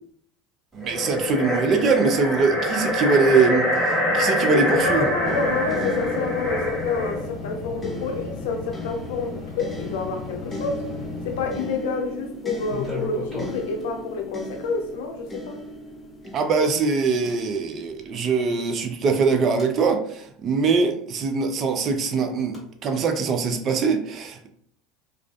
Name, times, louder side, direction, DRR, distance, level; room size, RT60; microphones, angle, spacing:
voice 1, 0.7-5.1 16.3-24.5, right 4 dB, 45° right, 6 dB, 0.4 m, -22 dB
sound 1, 0.8-7.3, equal, 15° right, 1.2 m, -25 dB
voice 2, 4.4-10.8 11.2-15.6, left 4 dB, 75° left, 4 dB, 0.5 m, -28 dB
sound 2, 4.8-11.8 12.6-13.8 15.3-15.4 17.2-17.3 19.2-19.7 22.5-22.6, left 4 dB, ahead, 1.2 m, -35 dB
sound 3, 5.3-18.3 19.2-19.3, left 1 dB, 15° left, 0.5 m, -37 dB
2.4 x 2.4 x 2.3 m, 0.64 s
hypercardioid pair, 85°, 0 cm